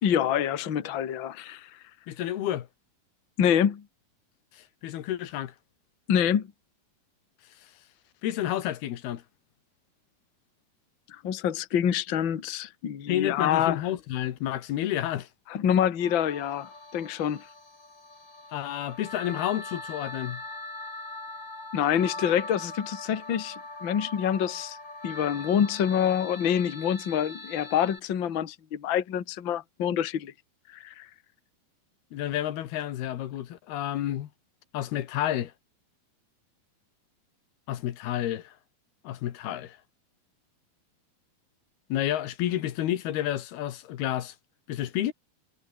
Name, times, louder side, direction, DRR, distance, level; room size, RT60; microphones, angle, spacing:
voice 1, 0.0-1.7 3.4-3.8 6.1-6.5 11.1-13.8 15.5-17.4 21.7-24.8 25.0-30.3 30.7-31.1, left 9 dB, 40° left, 1.9 m, -26 dB
voice 2, 2.1-2.7 4.5-5.5 8.2-9.2 13.1-15.3 18.5-20.4 32.1-34.3 34.7-35.5 37.7-38.5 39.1-39.8 41.9-44.4 44.7-45.1, left 12 dB, 90° left, 3.6 m, -30 dB
sound 1, 16.0-28.0, left 2 dB, 25° left, 7.8 m, -41 dB
omnidirectional pair, 4.4 m